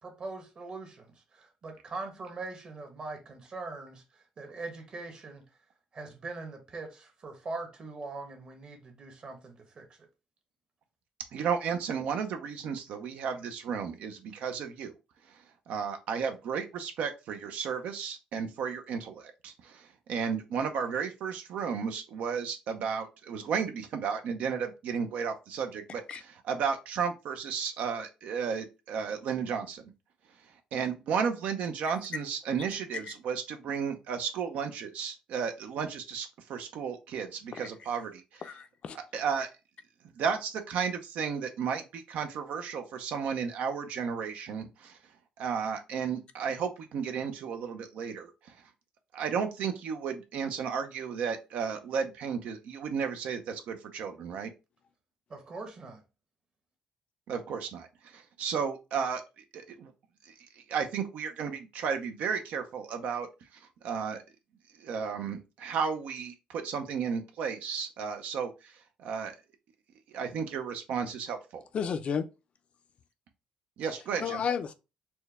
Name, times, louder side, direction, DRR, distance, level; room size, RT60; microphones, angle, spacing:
voice 1, 0.0-4.0 4.4-5.4 5.9-10.1 55.3-56.0, right 3 dB, 40° right, 1.2 m, -42 dB
voice 2, 11.3-14.9 15.3-15.4 15.7-29.9 30.7-38.4 38.9-39.5 40.2-45.0 45.4-48.6 49.1-54.5 57.3-59.2 59.5-59.9 60.2-64.2 64.8-69.3 70.1-71.6 73.8-74.4, right 6 dB, 75° right, 0.6 m, -33 dB
voice 3, 38.4-39.0 71.7-72.3 74.2-74.7, left 7 dB, 50° left, 0.4 m, -32 dB
4.4 x 2.2 x 3.4 m
cardioid pair, 110°, 2 cm